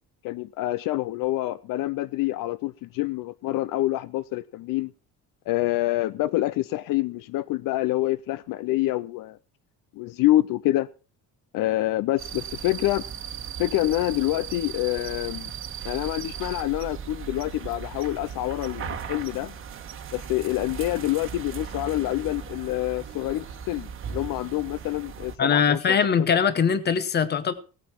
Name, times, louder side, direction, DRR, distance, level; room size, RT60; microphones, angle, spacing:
voice 1, 0.2-4.9 5.5-9.4 9.9-10.9 11.5-13.0 13.6-15.5 15.8-19.5 20.1-25.8, left 16 dB, 70° left, 0.5 m, -26 dB
sound 1, 12.2-25.3, right 7 dB, 35° right, 1.2 m, -37 dB
voice 2, 25.4-27.5, left 6 dB, 30° left, 0.9 m, -21 dB
17.0 x 8.9 x 4.5 m
cardioid pair, 175°, 34 cm